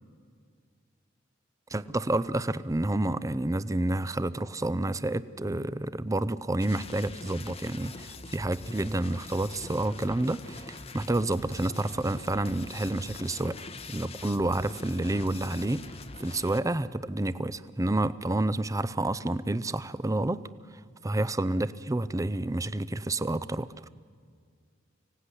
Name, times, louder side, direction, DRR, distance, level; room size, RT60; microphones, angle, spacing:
voice 1, 1.7-15.8 16.2-20.4 21.0-23.7, right 2 dB, 15° right, 15 dB, 0.6 m, -29 dB
sound 1, 6.6-16.6, left 3 dB, 30° left, 1.0 m, -44 dB
24.5 x 17.0 x 9.9 m, 2.1 s
head